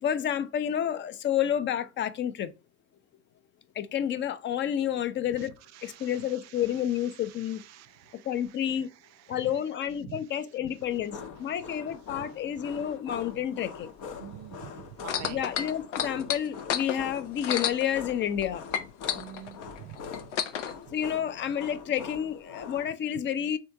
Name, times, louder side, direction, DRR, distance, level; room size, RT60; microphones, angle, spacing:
voice 1, 0.0-2.5 3.8-5.5 5.8-7.6 8.3-8.9 9.3-13.9 15.3-18.6 20.9-23.6, left 9 dB, 35° left, 0.5 m, -30 dB
voice 2, 5.4-6.8 7.1-8.3 9.3-9.4 10.1-10.2 12.2-12.3 14.2-14.7 15.0-15.4 19.1-20.0, right 13 dB, 50° right, 0.5 m, -46 dB
sound 1, 10.8-22.9, left 5 dB, 55° left, 0.8 m, -44 dB
sound 2, 15.0-18.4 18.7-20.7 21.5-21.6, left 9 dB, 90° left, 0.6 m, -31 dB
3.5 x 2.8 x 4.4 m
hypercardioid pair, 80°, 35 cm